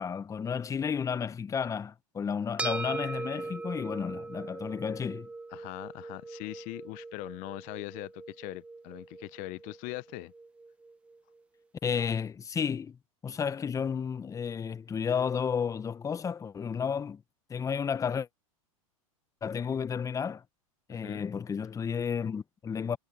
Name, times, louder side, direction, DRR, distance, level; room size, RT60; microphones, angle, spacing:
voice 1, 0.0-5.3 11.8-13.0 13.2-17.2 17.5-18.3 19.4-20.4 20.9-23.0, left 6 dB, 20° left, 1.0 m, -32 dB
sound 1, 2.6-11.2, right 3 dB, 5° right, 0.4 m, -40 dB
voice 2, 5.5-10.3 20.9-21.3, left 25 dB, 45° left, 0.8 m, -41 dB
hypercardioid pair, 100°, 18 cm